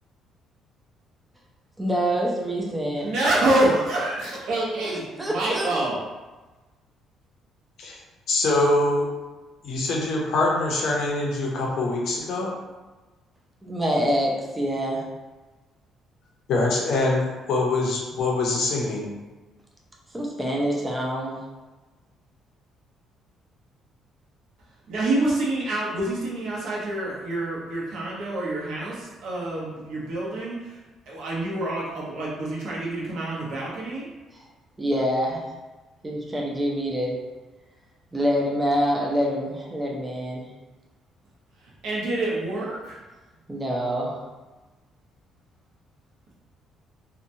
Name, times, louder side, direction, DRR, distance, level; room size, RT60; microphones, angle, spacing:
voice 1, 1.8-3.1 4.8-5.7 13.6-15.0 20.1-21.4 34.8-35.5 36.0-37.2 38.1-40.5 43.5-44.2, equal, 10° right, -2 dB, 0.4 m, -26 dB
voice 2, 3.0-6.0 24.9-30.8 31.1-34.1 41.8-43.0, right 1 dB, 65° right, -5 dB, 0.8 m, -27 dB
voice 3, 8.3-9.2 9.6-12.6 16.5-19.1, left 2 dB, 55° left, -2 dB, 0.6 m, -24 dB
2.8 x 2.2 x 2.6 m, 1.2 s
cardioid pair, 160°, 0 cm